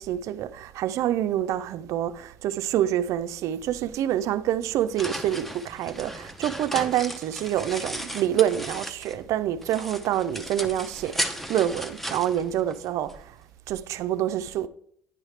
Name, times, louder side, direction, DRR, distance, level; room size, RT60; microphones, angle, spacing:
voice 1, 0.0-13.4 13.7-14.7, right 11 dB, 65° right, 0.4 m, -27 dB
sound 1, 4.6-9.3 9.6-13.2, equal, 5° left, 0.6 m, -35 dB
9.7 x 4.8 x 3.2 m
supercardioid pair, 100°, 6 cm